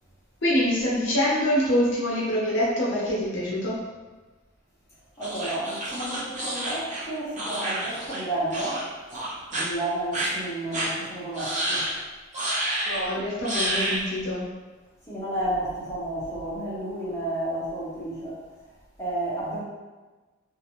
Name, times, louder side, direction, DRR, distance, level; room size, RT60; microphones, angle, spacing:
voice 1, 0.4-3.8 12.9-14.4, equal, 65° left, -6 dB, 0.7 m, -25 dB
voice 2, 5.2-8.8 9.5-11.8 15.1-18.4 19.0-19.6, right 1 dB, 15° left, -10 dB, 0.9 m, -31 dB
sound 1, 5.2-8.2 8.5-8.8 9.1-9.6 10.1-10.3 10.7-10.9 11.3-11.9 12.3-13.0 13.4-14.0, right 1 dB, 40° right, 0.7 m, -29 dB
2.4 x 2.1 x 2.9 m, 1.3 s
head